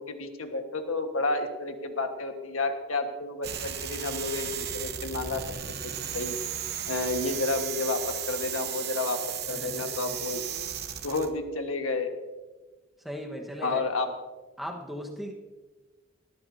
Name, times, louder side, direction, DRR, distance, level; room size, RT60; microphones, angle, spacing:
voice 1, 0.0-5.4 6.1-6.4 6.9-9.2 9.5-10.4 11.0-12.1 13.6-14.1, left 3 dB, 90° left, 5 dB, 1.5 m, -30 dB
sound 1, 3.4-11.3, right 9 dB, 50° right, 1.0 m, -35 dB
voice 2, 9.5-10.4 13.0-13.8 14.6-15.3, equal, ahead, 1 dB, 1.3 m, -38 dB
18.5 x 13.5 x 2.8 m, 1.3 s
head